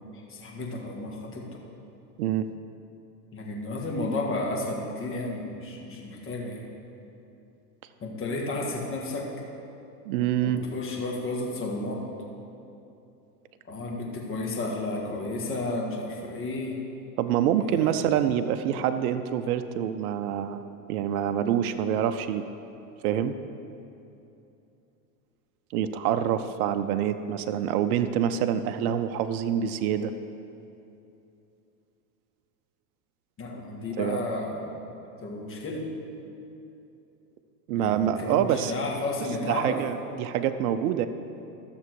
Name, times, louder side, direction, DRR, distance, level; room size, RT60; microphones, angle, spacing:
voice 1, 0.3-1.5 3.3-6.6 8.0-9.3 10.4-12.1 13.7-16.8 17.6-17.9 33.4-34.8 35.2-35.8 37.8-39.8, left 2 dB, 25° left, -1 dB, 1.8 m, -32 dB
voice 2, 10.1-10.6 17.2-20.6 20.9-22.4 23.0-23.3 25.7-30.1 34.0-34.3 37.7-38.7 39.5-41.1, right 10 dB, 60° right, 9 dB, 0.6 m, -26 dB
13.0 x 6.8 x 4.8 m, 2.8 s
hypercardioid pair, 115°, 50 cm